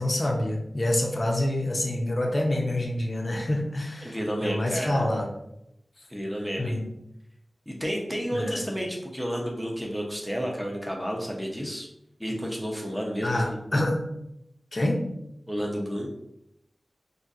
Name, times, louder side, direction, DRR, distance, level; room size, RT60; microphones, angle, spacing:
voice 1, 0.0-4.2 4.4-5.3 6.6-6.9 8.3-8.6 13.2-14.1 14.7-15.1, left 1 dB, 45° left, 1 dB, 0.6 m, -27 dB
voice 2, 4.0-5.1 6.1-6.8 7.7-11.9 12.2-13.6 15.5-16.1, equal, ahead, -1 dB, 0.8 m, -31 dB
4.4 x 2.6 x 2.5 m, 0.82 s
wide cardioid pair, 70°, 0 cm